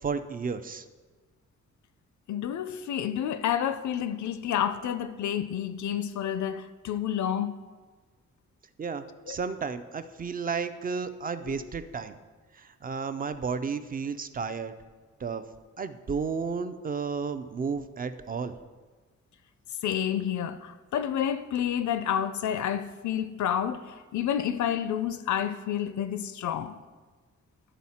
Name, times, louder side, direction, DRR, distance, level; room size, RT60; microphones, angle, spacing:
voice 1, 0.0-0.9 8.8-12.2 12.5-14.7 15.2-15.4 15.8-18.5, right 5 dB, 30° right, 0.4 m, -32 dB
voice 2, 2.3-7.6 9.3-9.4 11.4-11.6 19.8-26.8, left 9 dB, 80° left, 0.5 m, -29 dB
11.0 x 4.1 x 4.2 m
wide cardioid pair, 145°, 29 cm